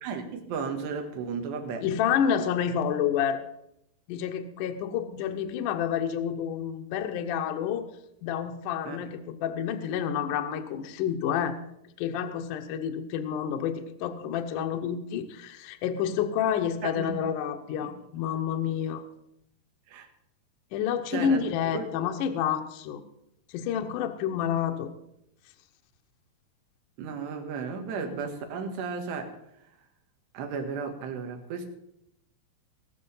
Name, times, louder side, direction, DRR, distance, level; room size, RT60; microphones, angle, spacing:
voice 1, 0.0-1.9 8.9-9.1 16.8-17.2 17.8-17.9 19.9-20.1 21.1-21.4 21.7-21.9 27.0-29.4 30.3-31.7, right 5 dB, 90° right, 6 dB, 3.6 m, -34 dB
voice 2, 1.8-3.4 4.1-7.9 8.2-11.6 12.0-19.1 20.7-23.0 23.5-24.9, left 8 dB, 75° left, 6 dB, 2.0 m, -29 dB
20.0 x 6.8 x 5.5 m, 0.79 s
omnidirectional pair, 4.8 m